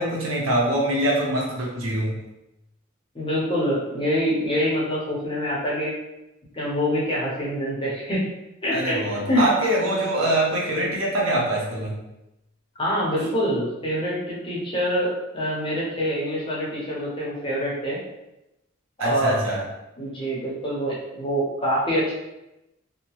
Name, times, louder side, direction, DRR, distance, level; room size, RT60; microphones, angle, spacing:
voice 1, 0.0-2.2 8.7-12.0 19.0-19.6, right 1 dB, 75° right, -3 dB, 0.8 m, -24 dB
voice 2, 3.1-5.9 6.5-8.3 8.6-9.0 9.3-9.5 12.8-18.0 19.0-19.4 20.0-22.1, equal, 25° left, -5 dB, 0.7 m, -25 dB
2.8 x 2.1 x 3.0 m, 0.92 s
head